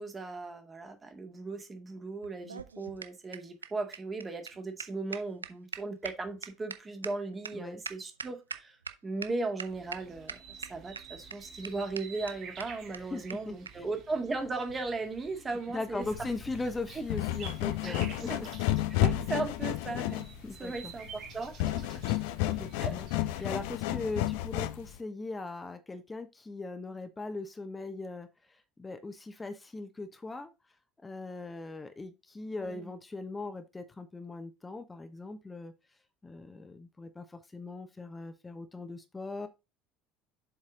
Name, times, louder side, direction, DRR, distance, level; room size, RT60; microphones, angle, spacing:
voice 1, 0.0-8.8 9.0-16.3 16.9-17.0 17.8-18.0 18.3-18.4 18.9-20.2 20.6-22.0 22.8-23.0 23.3-23.4 32.5-32.9, right 3 dB, 25° right, 2.0 m, -37 dB
sound 1, 2.2-8.9 9.2-9.3 9.6-10.0 10.3-11.0 11.3-11.4 11.6-11.7 12.0-12.1 12.3-12.4 12.6-12.7 12.9-13.0 13.3-13.4 13.7-13.8 14.6-14.7, right 5 dB, 85° right, 0.6 m, -41 dB
sound 2, 9.7-23.2, right 6 dB, 50° right, 2.0 m, -50 dB
voice 2, 13.0-13.8 15.7-18.5 19.1-19.2 20.4-20.9 22.4-23.1 23.4-30.5 31.0-35.7 36.2-39.5, left 3 dB, 20° left, 1.0 m, -40 dB
sound 3, 16.0-25.0, left 14 dB, 65° left, 0.5 m, -32 dB
7.5 x 4.6 x 3.8 m
figure-of-eight pair, 65°, 0 cm